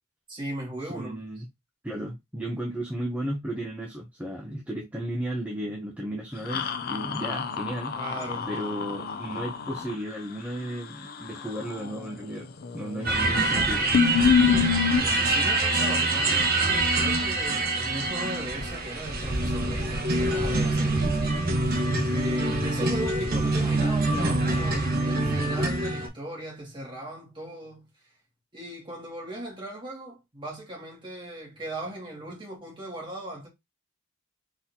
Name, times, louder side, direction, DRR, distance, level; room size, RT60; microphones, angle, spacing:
voice 1, 0.3-1.2 8.0-8.7 14.9-21.3 22.1-27.9 28.5-33.5, right 1 dB, 25° right, 2.2 m, -38 dB
voice 2, 0.8-1.5 1.8-7.9 8.5-12.5 12.7-13.9, right 1 dB, 5° right, 0.7 m, -34 dB
sound 1, 6.5-9.9 12.6-13.1 13.4-13.5 13.9-15.0, left 7 dB, 45° left, 0.5 m, -26 dB
sound 2, 13.0-26.1, right 2 dB, 45° right, 1.2 m, -25 dB
4.1 x 3.7 x 2.8 m
head